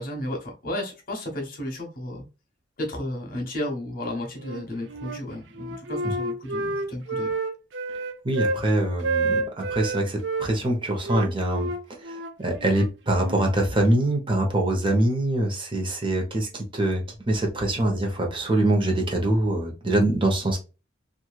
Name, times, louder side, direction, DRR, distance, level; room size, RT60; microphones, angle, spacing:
voice 1, 0.0-2.2 2.8-7.3, left 1 dB, 50° left, 2 dB, 1.2 m, -33 dB
Wind instrument woodwind instrument, 4.4-5.2 5.6-8.6 9.0-10.5 11.0-13.5, right 3 dB, 75° right, 0.5 m, -29 dB
voice 2, 8.2-11.7 12.0-20.6, right 1 dB, 30° right, 1 dB, 1.0 m, -24 dB
3.1 x 2.5 x 2.4 m, 0.30 s
head